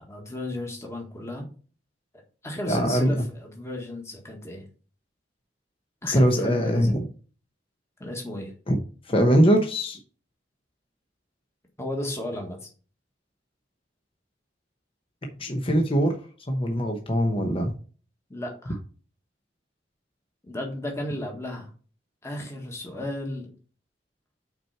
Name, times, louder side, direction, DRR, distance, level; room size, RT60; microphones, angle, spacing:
voice 1, 0.0-1.4 2.4-4.6 6.0-6.9 8.0-8.5 11.8-12.7 18.3-18.8 20.4-21.7 22.2-23.5, left 1 dB, 15° left, 1 dB, 1.6 m, -34 dB
voice 2, 2.7-3.2 6.0-7.1 8.7-8.8 9.1-10.0 15.4-16.1 16.5-17.7, equal, 30° left, 3 dB, 0.9 m, -22 dB
5.9 x 4.5 x 5.8 m, 0.39 s
head